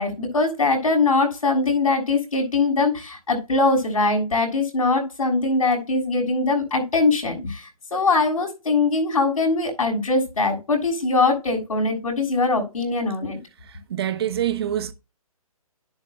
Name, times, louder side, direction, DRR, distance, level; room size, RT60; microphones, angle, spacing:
voice 1, 0.0-13.4, left 3 dB, 70° left, 6.8 m, -22 dB
voice 2, 13.6-14.9, right 10 dB, 45° right, 1.1 m, -26 dB
11.5 x 10.5 x 2.4 m
figure-of-eight pair, 140°, 19 cm